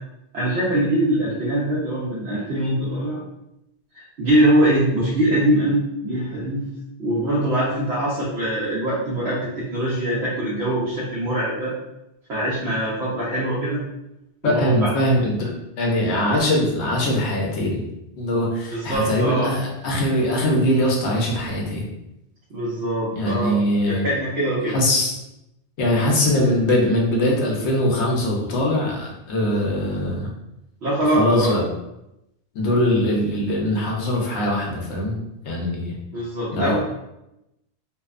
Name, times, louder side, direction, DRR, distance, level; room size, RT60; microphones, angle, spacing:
voice 1, 0.3-3.2 3.9-6.7 7.0-11.7 12.3-13.8 14.4-14.9 18.7-19.5 22.5-23.6 23.9-24.8 30.8-31.5 36.1-36.8, right 1 dB, 75° right, -8 dB, 0.9 m, -22 dB
voice 2, 14.4-17.8 18.2-21.9 23.2-24.1 24.7-25.2 25.8-30.3 31.1-31.6 32.5-35.2 35.4-36.0 36.5-36.8, left 1 dB, 80° left, -1 dB, 0.9 m, -21 dB
2.7 x 2.1 x 2.3 m, 0.87 s
omnidirectional pair, 1.1 m